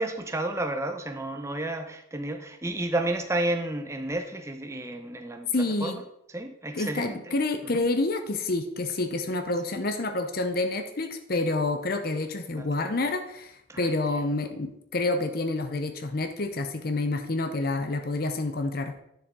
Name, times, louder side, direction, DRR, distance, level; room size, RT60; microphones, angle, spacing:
voice 1, 0.0-5.5 5.8-5.9 6.3-7.2 7.7-7.8 12.5-12.7 13.7-13.9, right 1 dB, 15° right, 6 dB, 0.8 m, -31 dB
voice 2, 5.5-6.0 6.7-18.9, left 2 dB, 50° left, 7 dB, 0.8 m, -28 dB
10.5 x 6.9 x 3.7 m, 0.78 s
head